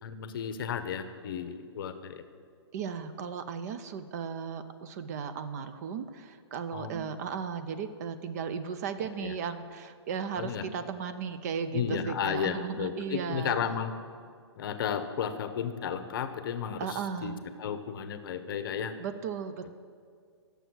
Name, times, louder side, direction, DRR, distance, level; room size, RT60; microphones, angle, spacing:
voice 1, 0.0-2.2 6.7-7.0 9.2-9.3 10.4-10.6 11.7-14.0 14.6-18.9, left 7 dB, 50° left, 10 dB, 0.7 m, -33 dB
voice 2, 2.7-13.6 16.8-17.4 19.0-19.7, right 6 dB, 35° right, 10 dB, 0.5 m, -36 dB
9.1 x 6.8 x 6.1 m, 2.2 s
hypercardioid pair, 145°, 15 cm